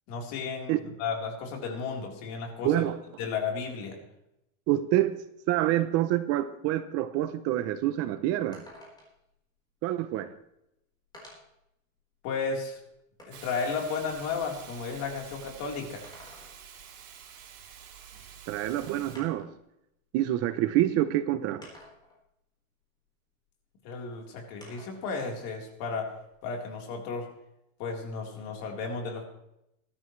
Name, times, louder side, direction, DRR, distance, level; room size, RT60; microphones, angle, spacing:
voice 1, 0.1-2.8 3.2-4.0 12.2-12.8 13.3-16.0 23.8-26.1 26.4-27.3 27.8-29.2, left 5 dB, 50° left, 0 dB, 4.0 m, -33 dB
voice 2, 2.6-3.0 4.7-5.1 5.5-8.6 9.8-10.3 18.5-19.5 20.1-21.7, right 13 dB, 35° right, 11 dB, 0.7 m, -27 dB
sound 1, 8.5-9.3 10.3-10.4 11.1-11.6 12.2-13.6 15.8-16.8 18.3-18.4 19.1-19.6 20.6-20.7 21.6-22.2 24.6-25.1 25.4-26.6, left 1 dB, 10° left, 4.4 m, -51 dB
Hiss, 13.3-19.2, right 8 dB, 70° right, 4.8 m, -48 dB
21.0 x 13.0 x 3.2 m, 0.82 s
supercardioid pair, 160°, 42 cm